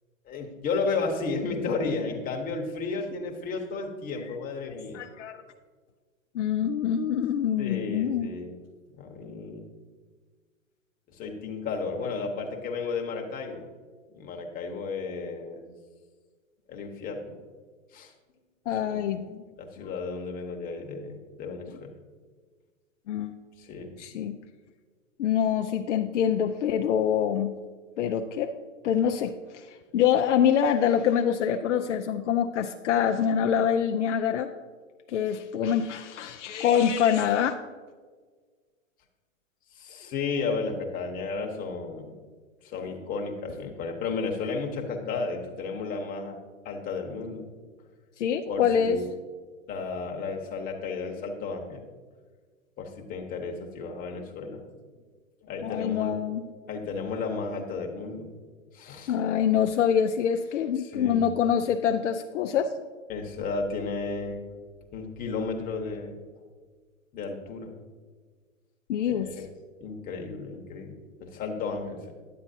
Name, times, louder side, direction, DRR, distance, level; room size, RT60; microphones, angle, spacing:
voice 1, 0.3-5.0 7.6-8.5 8.9-9.7 11.1-13.6 14.1-15.7 16.7-17.4 17.9-18.1 18.8-19.0 19.6-21.9 23.6-23.9 39.7-42.1 42.6-46.4 46.6-47.4 48.5-49.1 49.7-51.8 52.8-54.6 55.4-56.2 56.7-58.3 58.7-59.1 60.8-61.3 63.1-64.4 64.9-66.1 67.1-67.7 69.1-69.5 69.8-70.9 71.2-72.1, left 4 dB, 20° left, 1 dB, 1.0 m, -33 dB
voice 2, 4.9-5.4 6.3-8.3 18.7-19.4 19.8-19.9 23.1-23.4 24.0-24.4 25.2-27.6 28.0-28.5 28.8-34.5 35.1-37.6 48.2-49.0 55.6-56.4 59.1-62.7 68.9-69.3, left 8 dB, 60° left, 5 dB, 0.5 m, -25 dB
10.0 x 7.8 x 2.7 m, 1.5 s
hypercardioid pair, 115°, 40 cm